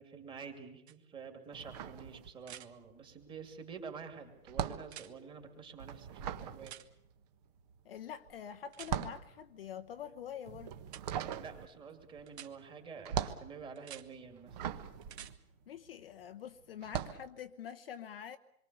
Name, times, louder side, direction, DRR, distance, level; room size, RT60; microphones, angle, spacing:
voice 1, 0.0-6.8 11.2-14.7, right 6 dB, 10° right, 2.6 m, -49 dB
sound 1, 0.9-1.0 2.4-2.7 4.8-5.1 6.7-6.9 8.7-8.9 10.9-11.0 12.3-12.5 13.8-14.1 15.0-15.3 17.4-17.5, right 10 dB, 50° right, 1.8 m, -49 dB
sound 2, 1.5-2.8 3.0-16.2 16.8-17.3, right 9 dB, 30° right, 1.3 m, -41 dB
voice 2, 7.8-10.7 15.7-18.4, left 9 dB, 40° left, 0.9 m, -46 dB
27.0 x 23.0 x 6.9 m
hypercardioid pair, 155°, 43 cm